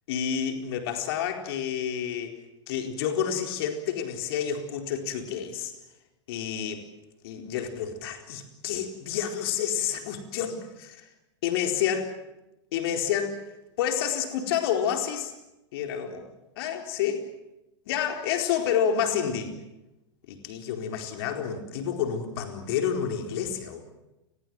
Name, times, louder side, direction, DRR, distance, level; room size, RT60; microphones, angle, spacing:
voice 1, 0.1-2.4 2.7-5.7 6.3-6.8 7.2-11.0 11.4-12.1 12.7-13.4 13.8-15.3 15.7-16.3 16.6-17.2 17.9-19.5 20.3-23.8, left 8 dB, 55° left, 5 dB, 4.3 m, -29 dB
30.0 x 21.0 x 7.7 m, 0.97 s
figure-of-eight pair, 95°, 15 cm